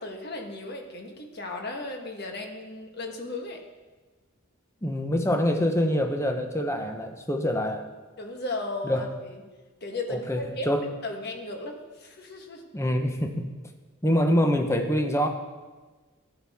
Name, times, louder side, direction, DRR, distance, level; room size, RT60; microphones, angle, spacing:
voice 1, 0.0-3.6 8.2-9.4 9.8-10.7 11.0-12.6, left 2 dB, 50° left, 2 dB, 1.3 m, -35 dB
voice 2, 4.8-7.9 8.8-9.0 10.1-10.8 12.7-13.5 14.0-15.3, equal, 15° left, 4 dB, 0.7 m, -25 dB
13.5 x 8.7 x 3.6 m, 1.3 s
head